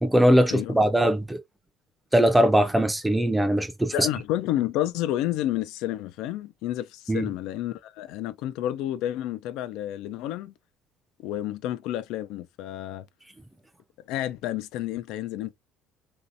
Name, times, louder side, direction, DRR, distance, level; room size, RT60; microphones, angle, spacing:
voice 1, 0.0-1.4 2.1-4.1 7.1-7.3, equal, 5° right, 0.5 m, -21 dB
voice 2, 3.9-10.5 11.2-13.1 14.1-15.5, left 13 dB, 75° left, 0.3 m, -30 dB
3.0 x 2.7 x 2.5 m
cardioid pair, 125°, 0 cm